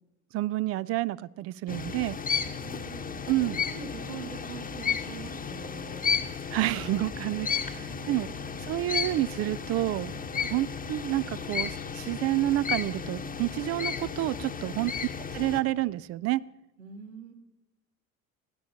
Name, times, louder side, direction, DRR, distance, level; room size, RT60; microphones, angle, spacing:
voice 1, 0.3-2.2 3.3-3.6 6.5-8.3 8.6-15.1 15.3-16.4, right 16 dB, 35° right, 20 dB, 0.4 m, -29 dB
sound 1, 1.7-15.6, left 6 dB, 20° left, 1.1 m, -33 dB
voice 2, 2.2-6.1 7.6-8.6 9.8-10.3 14.4-14.6 16.8-17.3, right 6 dB, 80° right, -1 dB, 2.7 m, -45 dB
27.5 x 12.5 x 2.8 m, 1.0 s
figure-of-eight pair, 60°, 42 cm